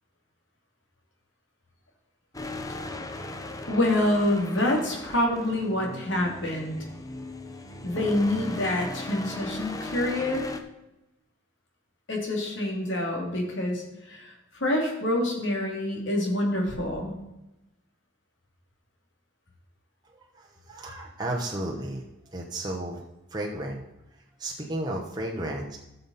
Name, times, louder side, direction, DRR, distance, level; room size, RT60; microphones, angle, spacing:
sound 1, 2.3-10.6, left 2 dB, 15° left, 0.7 m, -38 dB
voice 1, 3.7-6.8 7.8-10.4 12.1-17.2, left 1 dB, 65° left, 0 dB, 2.6 m, -27 dB
voice 2, 20.1-23.0 23.3-23.8 24.4-25.8, right 1 dB, 20° right, -2 dB, 1.0 m, -33 dB
13.0 x 6.8 x 4.1 m, 0.94 s
head